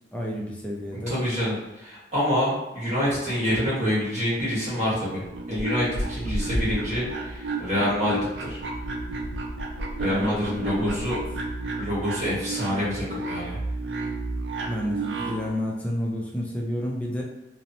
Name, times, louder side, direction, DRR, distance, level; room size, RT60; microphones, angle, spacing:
voice 1, 0.1-1.2 3.5-3.6 10.1-11.2 14.7-17.2, equal, 10° left, -2 dB, 0.5 m, -30 dB
voice 2, 1.1-5.2 5.5-8.6 10.0-11.1 11.8-13.6, equal, 40° right, -8 dB, 1.3 m, -26 dB
sound 1, 5.3-15.5, right 2 dB, 70° right, 0.4 m, -31 dB
2.9 x 2.0 x 2.6 m, 1.0 s
head